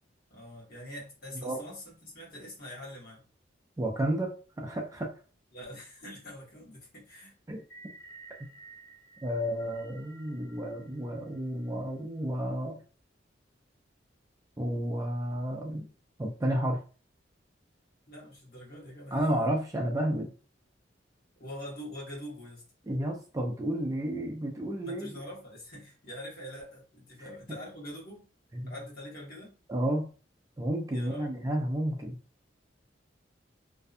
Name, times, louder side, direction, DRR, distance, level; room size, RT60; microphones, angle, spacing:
voice 1, 0.3-3.3 5.5-7.3 18.1-19.5 21.4-22.6 24.8-28.3 28.7-29.5 30.9-31.3, equal, 55° left, -4 dB, 1.2 m, -44 dB
voice 2, 3.8-5.1 7.5-7.6 9.2-12.8 14.6-15.9 16.2-16.8 19.1-20.3 22.9-25.2 27.2-27.3 28.5-28.7 29.7-30.1 30.6-32.2, right 1 dB, 20° right, 1 dB, 0.4 m, -31 dB
sound 1, 7.6-11.9, right 3 dB, 70° left, 1.3 m, -53 dB
2.6 x 2.2 x 2.4 m, 0.36 s
head